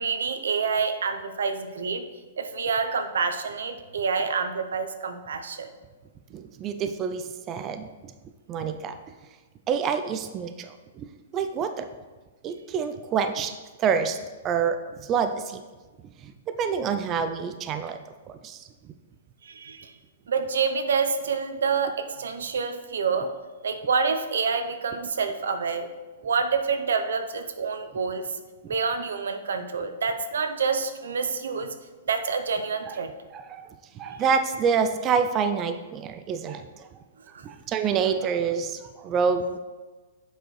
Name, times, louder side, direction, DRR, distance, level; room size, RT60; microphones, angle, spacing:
voice 1, 0.0-2.0 2.4-5.7 19.4-19.9 20.3-23.3 23.6-25.9 26.2-28.2 28.7-31.7 32.1-33.1 37.3-37.4, right 5 dB, 90° right, 8 dB, 0.6 m, -27 dB
voice 2, 6.3-7.9 8.5-8.9 9.7-11.0 11.3-11.9 12.4-13.5 13.8-14.2 14.4-14.8 15.1-15.6 16.6-18.0 18.3-18.6 32.9-33.0 33.3-33.7 34.0-36.7 37.4-39.6, right 6 dB, 25° right, 8 dB, 0.3 m, -27 dB
7.8 x 4.6 x 3.1 m, 1.3 s
hypercardioid pair, 150°, 0 cm